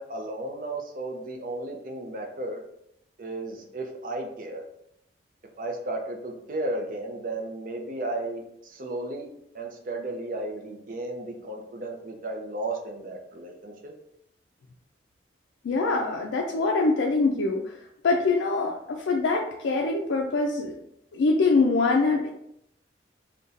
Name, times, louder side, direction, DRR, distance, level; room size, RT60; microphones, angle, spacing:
voice 1, 0.0-2.6 3.2-4.6 5.6-9.3 9.5-13.9, right 2 dB, 45° right, 2 dB, 0.5 m, -34 dB
voice 2, 15.6-17.8 18.0-20.7 21.1-22.3, left 3 dB, 85° left, 0 dB, 0.4 m, -24 dB
2.5 x 2.2 x 3.8 m, 0.75 s
head